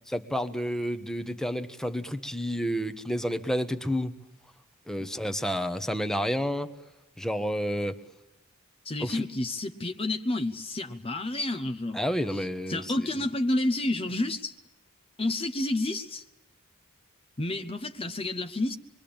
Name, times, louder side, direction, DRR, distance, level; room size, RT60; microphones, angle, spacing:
voice 1, 0.1-4.1 4.9-6.7 7.2-8.0 9.0-9.2 11.9-13.1, equal, ahead, 1.2 m, -30 dB
voice 2, 8.8-12.0 12.3-14.6 15.2-16.2 17.4-18.8, left 2 dB, 25° left, 0.9 m, -30 dB
26.0 x 22.5 x 8.8 m
head